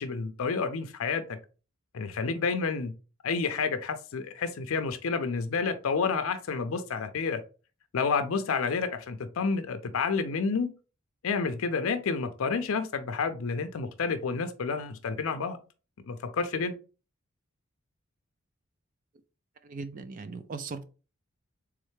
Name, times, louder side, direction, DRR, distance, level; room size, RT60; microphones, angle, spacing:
voice 1, 0.0-1.4 1.9-2.9 3.2-7.4 7.9-10.7 11.2-15.6 16.1-16.7, left 5 dB, 80° left, 0.5 m, -29 dB
voice 2, 19.7-20.8, right 4 dB, 40° right, 0.4 m, -38 dB
3.6 x 3.2 x 3.1 m
head